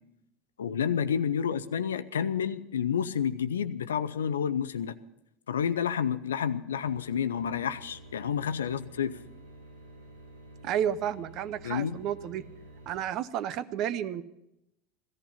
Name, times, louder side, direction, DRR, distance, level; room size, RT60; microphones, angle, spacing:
voice 1, 0.6-5.0 5.5-9.2 11.6-12.0, left 8 dB, 75° left, 14 dB, 0.6 m, -29 dB
sound 1, 6.8-13.0, right 1 dB, 85° right, 4.5 m, -50 dB
voice 2, 10.6-12.4 12.9-14.2, right 10 dB, 45° right, 17 dB, 0.7 m, -31 dB
17.0 x 14.0 x 5.6 m, 0.85 s
figure-of-eight pair, 75°, 0 cm